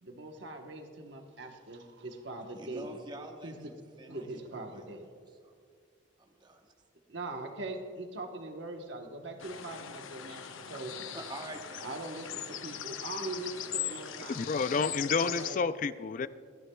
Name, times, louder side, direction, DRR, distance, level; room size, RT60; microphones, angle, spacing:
voice 1, 0.0-2.9 3.4-3.5 4.1-5.1 7.1-11.1 11.8-14.4 15.2-15.6, right 2 dB, 65° right, 4 dB, 1.0 m, -41 dB
voice 2, 2.6-4.8 5.4-5.5 6.2-6.7 11.1-12.3, right 2 dB, 20° right, 2 dB, 0.9 m, -47 dB
sound 1, 9.4-15.5, left 9 dB, 90° left, 0.7 m, -40 dB
voice 3, 14.3-16.3, left 4 dB, 40° left, 14 dB, 0.3 m, -30 dB
25.0 x 9.9 x 2.2 m, 2.1 s
head